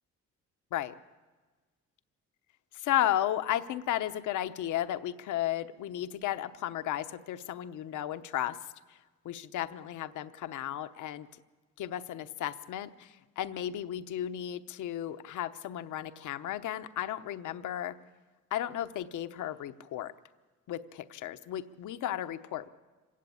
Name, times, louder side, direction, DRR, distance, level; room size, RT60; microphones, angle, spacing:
voice 1, 2.7-8.6 8.9-9.0 9.2-11.3 11.8-18.0 18.5-20.1 20.7-22.7, left 12 dB, 80° left, 11 dB, 0.9 m, -34 dB
26.0 x 16.0 x 8.7 m, 1.4 s
cardioid pair, 90°, 30 cm